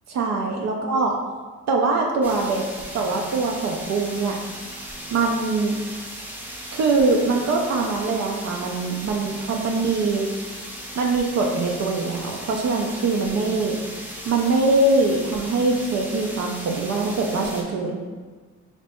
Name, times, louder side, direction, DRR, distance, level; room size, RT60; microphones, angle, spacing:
voice 1, 0.1-1.2 1.7-2.6 2.9-4.4 5.1-5.8 6.7-10.3 11.0-13.8 14.3-18.0, right 3 dB, 60° right, 0 dB, 0.5 m, -23 dB
sound 1, 2.2-17.6, equal, 5° right, 0.7 m, -37 dB
3.3 x 3.1 x 2.9 m, 1.4 s
cardioid pair, 90°, 30 cm